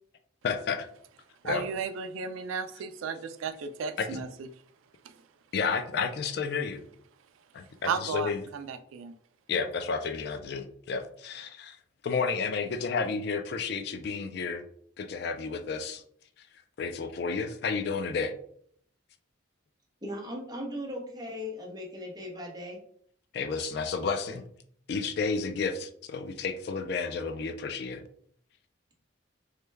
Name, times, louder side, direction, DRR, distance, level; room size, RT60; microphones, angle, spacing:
voice 1, 0.4-0.9 1.4-1.6 4.0-4.2 5.5-6.8 7.5-8.4 9.5-11.8 12.0-14.6 15.0-16.0 16.4-16.5 16.8-18.3 23.3-24.4 24.9-28.0, left 5 dB, 55° left, 8 dB, 0.3 m, -31 dB
voice 2, 1.4-4.5 5.0-5.3 7.8-9.1, right 5 dB, 85° right, 9 dB, 0.3 m, -34 dB
voice 3, 20.0-22.8, left 1 dB, 20° right, -1 dB, 0.7 m, -38 dB
3.2 x 2.2 x 3.3 m, 0.62 s
head